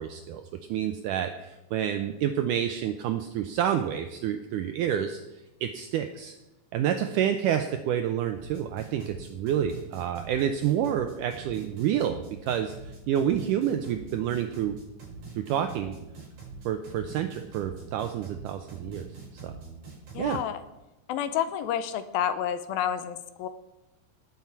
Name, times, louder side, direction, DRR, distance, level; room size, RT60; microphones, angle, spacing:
voice 1, 0.0-6.4 6.7-14.8 15.4-15.9 16.7-19.6 20.2-20.4, right 9 dB, 85° right, 7 dB, 1.8 m, -29 dB
sound 1, 8.4-20.4, right 4 dB, 55° right, 5.8 m, -44 dB
voice 2, 20.1-20.6 21.1-23.5, left 9 dB, 85° left, 12 dB, 2.4 m, -29 dB
18.5 x 7.4 x 4.6 m, 0.98 s
omnidirectional pair, 4.4 m